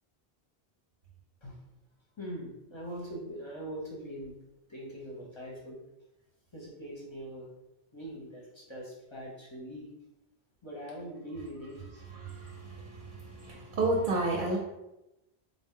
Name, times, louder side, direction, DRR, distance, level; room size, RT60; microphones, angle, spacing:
voice 1, 2.2-4.4 4.7-5.8 6.5-7.5 7.9-9.9 10.6-12.0, equal, 35° left, -4 dB, 0.6 m, -42 dB
voice 2, 12.0-14.6, right 2 dB, 60° right, -1 dB, 0.7 m, -32 dB
3.7 x 2.0 x 3.6 m, 0.92 s
omnidirectional pair, 1.0 m